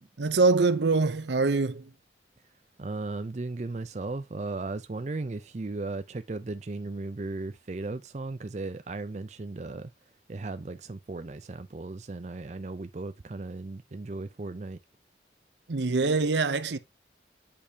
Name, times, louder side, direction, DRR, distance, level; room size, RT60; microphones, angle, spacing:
voice 1, 0.2-1.9 15.7-16.8, right 3 dB, 75° right, 0.7 m, -24 dB
voice 2, 2.8-9.9 10.3-14.8, right 3 dB, 40° right, 0.5 m, -36 dB
8.6 x 5.2 x 2.8 m
head